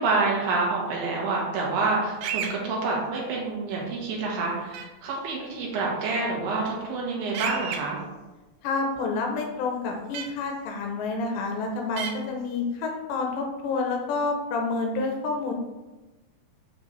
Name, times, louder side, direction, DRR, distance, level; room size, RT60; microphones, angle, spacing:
voice 1, 0.0-8.0, right 3 dB, 60° right, -3 dB, 3.0 m, -27 dB
sound 1, 2.2-2.5 4.7-4.8 7.3-7.8 10.1-10.2 12.0-12.1, right 7 dB, 75° right, 2.7 m, -30 dB
voice 2, 8.6-15.5, left 3 dB, 80° left, 1 dB, 2.9 m, -28 dB
7.8 x 6.0 x 3.3 m, 1.1 s
omnidirectional pair, 5.4 m